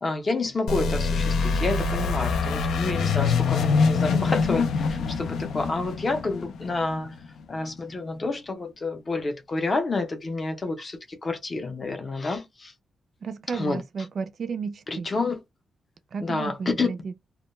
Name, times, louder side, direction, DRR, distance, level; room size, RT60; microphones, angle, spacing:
voice 1, 0.0-7.1 7.5-12.7 13.5-13.8 14.9-15.4 16.2-16.9, left 3 dB, 30° left, 0.5 m, -29 dB
sound 1, 0.7-7.3, left 4 dB, 85° left, 0.3 m, -24 dB
voice 2, 13.2-15.1 16.1-17.1, right 5 dB, 45° right, 0.3 m, -33 dB
2.2 x 2.1 x 2.9 m
wide cardioid pair, 155°, 0 cm